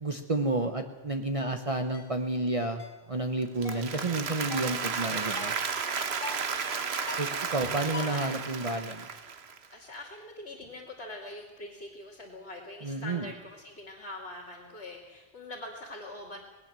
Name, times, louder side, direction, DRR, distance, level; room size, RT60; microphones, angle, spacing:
voice 1, 0.0-2.8 3.1-5.5 7.2-9.1 12.8-13.3, right 2 dB, 35° right, 5 dB, 1.0 m, -30 dB
sound 1, 1.9-2.1 2.8-3.0 3.6-3.9 4.5-4.8 5.4-5.7 6.2-6.5 7.1-7.4 7.9-8.3, left 4 dB, 60° left, 1.5 m, -42 dB
Applause, 3.4-9.7, right 5 dB, 80° right, 1.4 m, -33 dB
voice 2, 6.7-7.1 7.6-8.3 9.7-16.4, left 2 dB, 85° left, -3 dB, 2.9 m, -43 dB
19.5 x 18.5 x 7.6 m, 1.2 s
omnidirectional pair, 1.1 m